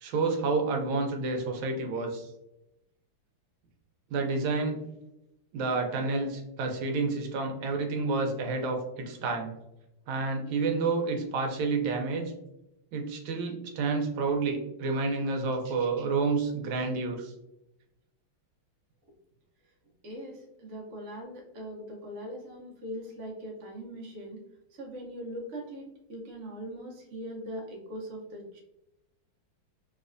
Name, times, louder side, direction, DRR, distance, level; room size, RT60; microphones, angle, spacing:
voice 1, 0.0-2.3 4.1-4.8 5.5-9.5 10.1-12.3 12.9-17.3, right 3 dB, 80° right, 3 dB, 1.4 m, -29 dB
voice 2, 20.0-24.4 24.7-25.8 26.1-28.6, equal, 55° right, -1 dB, 0.8 m, -41 dB
3.3 x 3.2 x 2.5 m, 0.87 s
omnidirectional pair, 2.2 m